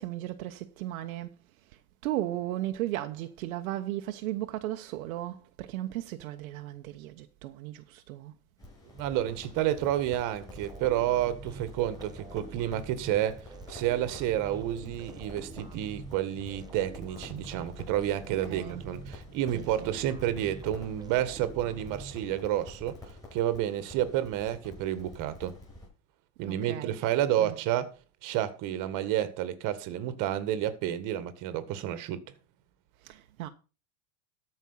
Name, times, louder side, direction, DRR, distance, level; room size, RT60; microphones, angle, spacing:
voice 1, 0.0-8.3 18.5-18.8 19.5-19.9 26.4-27.1 27.4-27.6 33.0-33.5, right 14 dB, 75° right, 1.1 m, -36 dB
Crackle, 8.6-25.9, left 2 dB, 10° left, 6.8 m, -49 dB
voice 2, 8.9-25.5 26.4-27.9 28.2-32.2, right 12 dB, 45° right, 1.7 m, -30 dB
sound 1, 10.5-22.7, right 3 dB, 10° right, 1.0 m, -46 dB
13.5 x 5.5 x 5.6 m
supercardioid pair, 135°, 43 cm